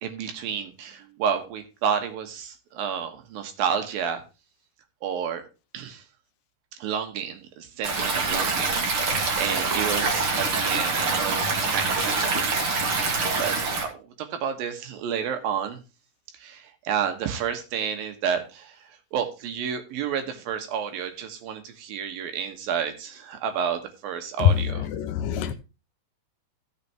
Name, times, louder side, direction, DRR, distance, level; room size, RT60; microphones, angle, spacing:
voice 1, 0.0-4.2 5.0-5.4 5.7-6.0 6.8-12.2 12.5-13.6 13.8-15.8 16.4-18.8 19.1-24.9, right 8 dB, 75° right, 6 dB, 3.1 m, -30 dB
Stream, 7.8-13.8, right 4 dB, 45° right, 2.2 m, -25 dB
voice 2, 25.0-25.5, left 8 dB, 75° left, 9 dB, 2.2 m, -29 dB
16.0 x 6.8 x 2.9 m, 0.29 s
omnidirectional pair, 4.2 m